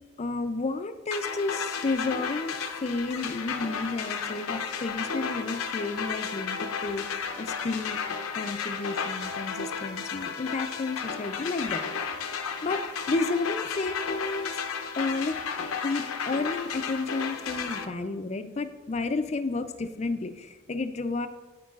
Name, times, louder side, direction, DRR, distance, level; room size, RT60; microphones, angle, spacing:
voice 1, 0.2-7.1 7.4-8.0 8.3-11.8 12.6-14.5 15.0-15.4 15.8-21.3, left 3 dB, 30° left, 9 dB, 0.4 m, -31 dB
sound 1, 1.1-17.9, left 6 dB, 80° left, 0.6 m, -33 dB
13.5 x 4.7 x 2.4 m, 1.3 s
head